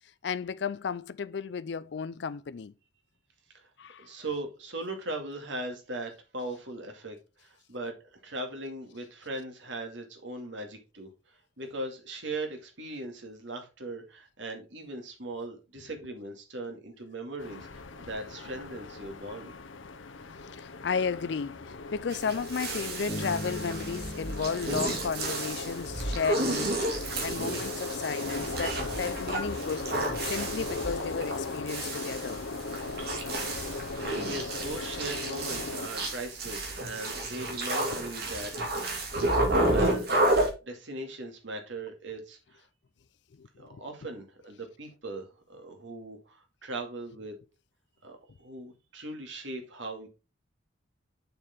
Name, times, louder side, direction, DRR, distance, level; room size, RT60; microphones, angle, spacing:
voice 1, 0.2-2.7 3.8-4.1 20.5-29.9 30.2-32.4 36.9-37.0 39.1-39.3 43.4-43.8, left 5 dB, 60° left, 0.4 m, -34 dB
voice 2, 4.0-19.5 33.6-33.9 34.3-38.5 38.8-39.3 39.6-40.3 40.6-42.7 43.6-47.4 48.0-50.1, right 2 dB, 75° right, 2.2 m, -39 dB
sound 1, 17.4-35.9, left 3 dB, 90° left, 0.9 m, -38 dB
sound 2, 22.1-40.5, right 1 dB, 55° right, 2.4 m, -31 dB
sound 3, 23.1-26.1, equal, 25° left, 2.6 m, -40 dB
6.8 x 6.7 x 3.5 m
head